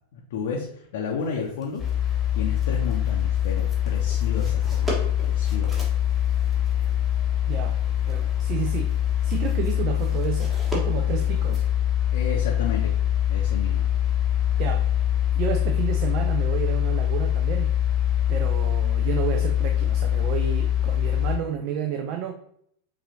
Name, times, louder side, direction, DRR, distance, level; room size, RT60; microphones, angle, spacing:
voice 1, 0.1-1.8 2.3-5.9 12.1-12.9 13.3-13.9, left 5 dB, 55° left, -1 dB, 0.6 m, -32 dB
sound 1, 1.2-11.7, right 1 dB, 10° right, 1.1 m, -41 dB
sound 2, 1.8-21.4, left 11 dB, 10° left, 1.2 m, -23 dB
voice 2, 7.5-7.8 8.1-11.7 14.6-14.9 15.4-17.7 18.3-22.3, right 9 dB, 40° right, 4 dB, 0.4 m, -31 dB
5.4 x 2.5 x 2.7 m, 0.68 s
figure-of-eight pair, 90°, 0 cm